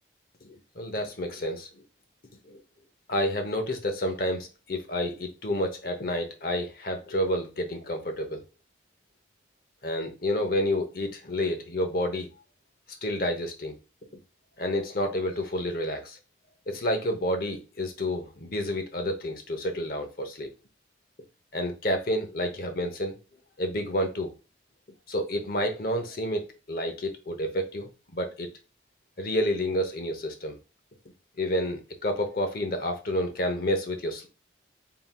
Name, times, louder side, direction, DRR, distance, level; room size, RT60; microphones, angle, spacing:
voice 1, 0.4-1.7 2.4-2.6 3.1-8.4 9.8-12.3 13.0-13.8 14.6-16.2 16.7-20.5 21.5-23.2 23.6-24.3 25.1-28.5 29.2-30.6 31.4-34.3, left 1 dB, 50° left, 0.9 m, -29 dB
4.2 x 3.8 x 2.3 m
head